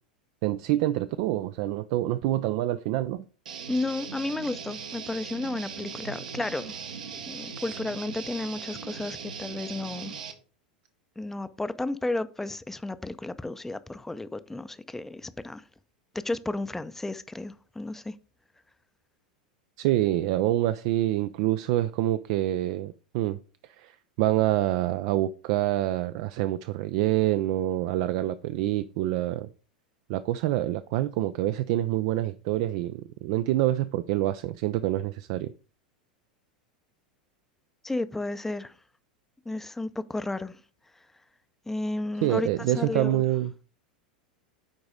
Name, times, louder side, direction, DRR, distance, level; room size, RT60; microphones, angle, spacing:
voice 1, 0.4-3.2 7.5-7.6 19.8-23.4 23.6-29.5 30.1-35.5 42.2-43.5, right 14 dB, 50° right, 0.4 m, -26 dB
Guitar, 3.5-10.3, right 6 dB, 70° right, 1.1 m, -39 dB
voice 2, 3.7-6.8 7.3-10.2 11.2-15.7 16.1-18.2 37.8-38.8 39.5-40.6 41.0-41.1 41.7-43.2, left 2 dB, 5° left, 0.5 m, -33 dB
9.7 x 4.0 x 4.9 m
figure-of-eight pair, 85°, 4 cm